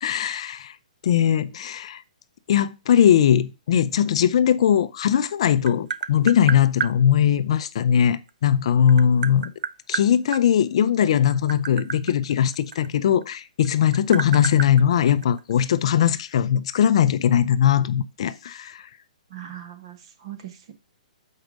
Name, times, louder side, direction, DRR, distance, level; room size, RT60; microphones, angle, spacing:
voice 1, 0.0-0.7 1.0-2.0 2.5-9.5 9.9-18.9, left 9 dB, 45° left, 0.4 m, -20 dB
Tap, 5.1-7.0 8.3-10.4 11.2-13.3 13.6-15.6, right 6 dB, 80° right, 0.5 m, -30 dB
voice 2, 19.3-20.7, right 12 dB, 40° right, 1.0 m, -39 dB
6.5 x 4.5 x 5.0 m
hypercardioid pair, 170°, 4 cm